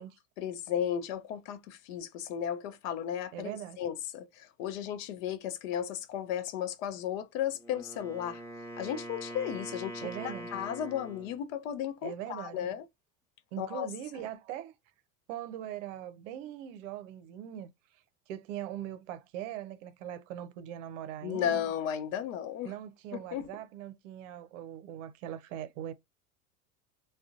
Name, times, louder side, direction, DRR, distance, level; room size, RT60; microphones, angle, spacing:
voice 1, 0.4-3.5 3.8-8.4 8.8-12.8 13.6-13.9 21.2-22.7 23.3-23.5, left 9 dB, 60° left, 0.7 m, -34 dB
voice 2, 3.3-3.8 10.0-10.5 12.0-12.7 13.5-14.7 15.3-21.6 22.6-25.9, right 11 dB, 55° right, 0.7 m, -41 dB
Wind instrument woodwind instrument, 7.5-11.4, right 1 dB, 5° left, 1.0 m, -43 dB
3.6 x 2.3 x 2.4 m
hypercardioid pair, 80°, 45 cm